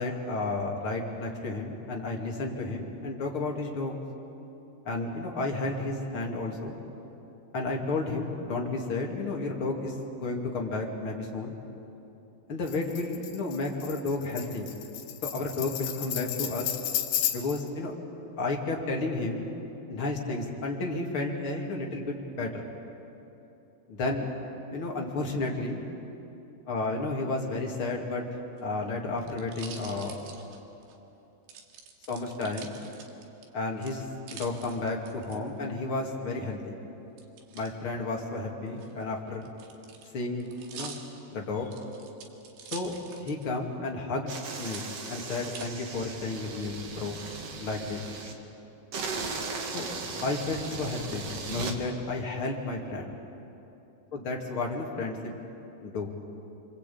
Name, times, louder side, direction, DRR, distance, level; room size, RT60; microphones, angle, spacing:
voice 1, 0.0-4.0 4.8-6.8 7.5-11.6 12.5-14.7 15.3-16.7 17.3-17.9 18.4-19.5 19.9-22.7 23.9-24.3 24.7-25.8 26.7-28.2 28.6-30.2 32.1-32.7 33.5-36.8 37.5-39.5 40.1-41.0 41.3-41.7 42.7-42.9 43.2-44.8 45.1-47.2 47.6-48.0 49.7-49.9 50.2-53.1 54.1-55.3 55.8-56.1, left 3 dB, 35° left, 0 dB, 2.8 m, -32 dB
Tambourine, 12.7-17.7, left 11 dB, 85° left, 3.7 m, -33 dB
sound 1, 28.4-31.0 31.5-33.5 33.8-35.4 37.2-37.7 38.7-43.6 43.9-44.0 44.5-45.7 46.3-46.8, right 6 dB, 75° right, 4.1 m, -46 dB
sound 2, 44.3-48.3 48.9-51.8, right 4 dB, 45° right, 2.3 m, -37 dB
26.5 x 26.0 x 8.6 m, 3.0 s
omnidirectional pair, 5.0 m